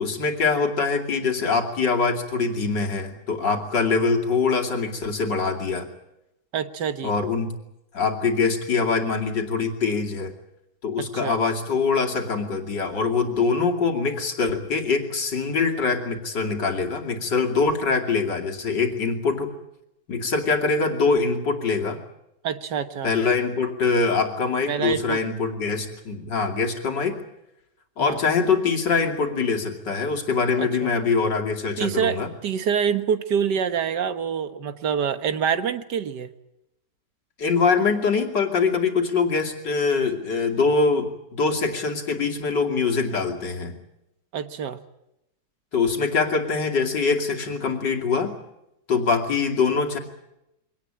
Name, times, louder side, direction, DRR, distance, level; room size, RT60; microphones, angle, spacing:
voice 1, 0.0-5.9 7.0-7.6 7.9-10.3 10.8-19.5 20.1-22.0 23.0-27.2 28.0-32.3 37.4-43.7 45.7-48.4 48.9-50.0, left 4 dB, 90° left, 2 dB, 3.3 m, -23 dB
voice 2, 6.5-7.1 11.0-11.4 22.4-23.1 24.7-25.2 28.0-28.2 30.6-30.9 31.8-36.3 44.3-44.8, right 7 dB, 75° right, 10 dB, 1.9 m, -26 dB
24.0 x 18.0 x 8.8 m, 0.87 s
omnidirectional pair, 1.8 m